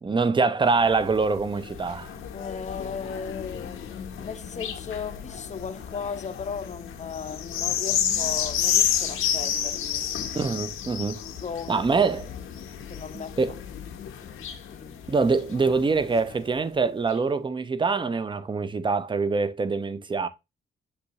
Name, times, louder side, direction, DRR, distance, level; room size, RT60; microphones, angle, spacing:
voice 1, 0.0-2.1 10.3-11.2 11.7-12.3 13.1-13.5 15.1-20.3, right 4 dB, 25° right, 0.5 m, -24 dB
sound 1, 0.6-16.5 17.1-17.2, left 9 dB, 80° left, 0.8 m, -31 dB
voice 2, 2.3-10.1 11.3-11.9 12.9-13.4 14.2-15.1, left 6 dB, 35° left, 0.6 m, -36 dB
6.8 x 2.6 x 2.9 m
cardioid pair, 75°, 21 cm